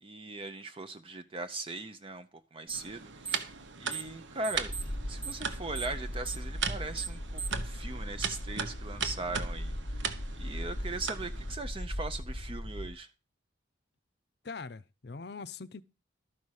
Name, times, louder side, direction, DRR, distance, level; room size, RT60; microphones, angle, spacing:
voice 1, 0.0-3.5 3.8-4.7 5.1-13.1, right 2 dB, 30° right, 0.6 m, -40 dB
sound 1, 2.7-3.0 3.2-4.2 4.4-7.7, right 7 dB, 10° right, 0.9 m, -39 dB
sound 2, 2.7-11.5, right 6 dB, 75° right, 1.1 m, -39 dB
sound 3, 4.5-12.9, equal, 25° left, 0.8 m, -38 dB
voice 2, 14.4-15.8, left 4 dB, 55° left, 0.6 m, -42 dB
13.0 x 5.5 x 6.4 m
head